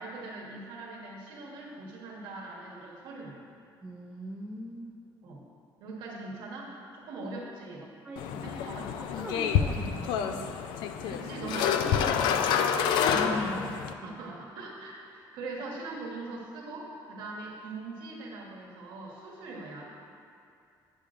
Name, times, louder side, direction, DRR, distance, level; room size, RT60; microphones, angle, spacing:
voice 1, 0.0-3.4 5.2-5.4 5.8-7.8 8.4-9.1 11.0-13.6 14.0-19.8, right 3 dB, 70° right, -2 dB, 1.2 m, -41 dB
voice 2, 3.8-5.2 7.2-7.3 8.0-8.6 8.9-10.5 13.1-13.7 14.0-14.2, equal, 10° right, -3 dB, 0.4 m, -39 dB
sound 1, 8.2-13.9, left 7 dB, 85° left, 0.4 m, -28 dB
9.7 x 6.9 x 2.5 m, 2.4 s
cardioid pair, 165°, 8 cm